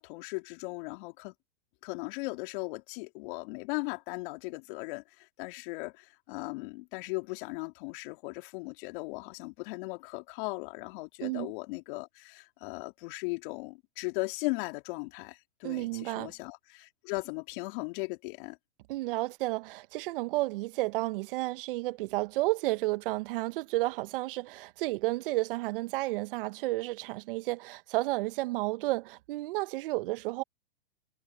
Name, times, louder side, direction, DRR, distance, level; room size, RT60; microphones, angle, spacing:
voice 1, 0.0-1.3 1.8-18.6, left 27 dB, 50° left, 3.4 m, -38 dB
voice 2, 11.2-11.5 15.6-16.3 18.9-30.4, right 20 dB, 55° right, 1.5 m, -32 dB
hypercardioid pair, 120°, 33 cm